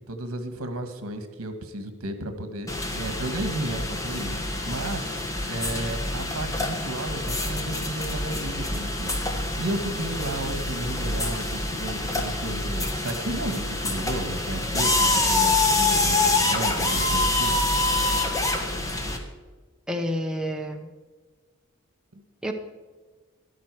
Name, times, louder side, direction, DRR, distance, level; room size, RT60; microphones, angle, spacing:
voice 1, 0.1-2.7 2.9-4.4 4.6-5.2 5.5-17.5, right 1 dB, 85° right, 8 dB, 1.5 m, -33 dB
sound 1, 2.7-19.2, left 2 dB, 15° left, 1.4 m, -26 dB
voice 2, 19.9-20.9 22.4-22.5, equal, 5° right, 2 dB, 0.9 m, -29 dB
13.5 x 11.5 x 4.7 m, 1.4 s
head